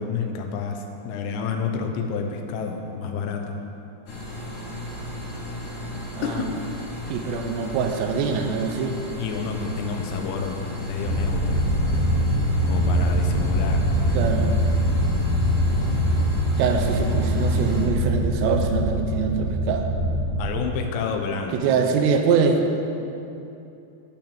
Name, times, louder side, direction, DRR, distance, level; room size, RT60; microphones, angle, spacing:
voice 1, 0.0-3.6 6.2-6.5 7.2-7.3 9.2-11.7 12.6-13.9 20.4-21.7, left 5 dB, 85° left, 3 dB, 3.0 m, -29 dB
sound 1, 4.1-17.9, equal, 65° left, 3.9 m, -35 dB
voice 2, 6.2-6.5 7.1-8.9 14.1-14.5 16.6-19.9 21.5-22.6, right 6 dB, 80° right, 4 dB, 2.9 m, -24 dB
sound 2, 11.1-21.1, equal, 60° right, 4.6 m, -23 dB
10.5 x 5.8 x 8.7 m, 2.7 s
omnidirectional pair, 5.0 m